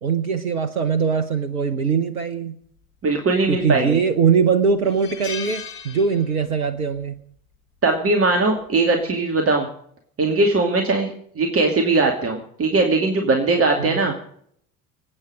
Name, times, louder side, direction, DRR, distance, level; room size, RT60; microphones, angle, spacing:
voice 1, 0.0-2.6 3.5-7.2 13.8-14.1, right 6 dB, 75° right, 8 dB, 1.1 m, -21 dB
voice 2, 3.0-4.0 7.8-9.7 10.2-11.1 11.4-14.1, right 3 dB, 30° right, 3 dB, 2.6 m, -20 dB
sound 1, 3.4-4.0 4.3-4.4 4.8-6.7 6.9-7.2 8.4-8.7, left 6 dB, 60° left, 1.8 m, -36 dB
26.5 x 8.9 x 5.0 m, 0.65 s
figure-of-eight pair, 65°, 43 cm